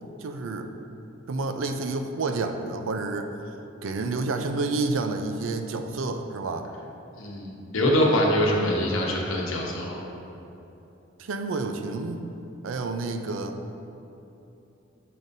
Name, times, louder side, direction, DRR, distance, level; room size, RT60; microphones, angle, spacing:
voice 1, 0.2-0.7 1.3-3.6 3.8-6.7 11.2-12.3 12.6-13.6, right 3 dB, 75° right, 6 dB, 0.4 m, -29 dB
voice 2, 7.2-10.0, equal, 85° left, -1 dB, 0.9 m, -24 dB
7.5 x 5.2 x 2.7 m, 2.9 s
head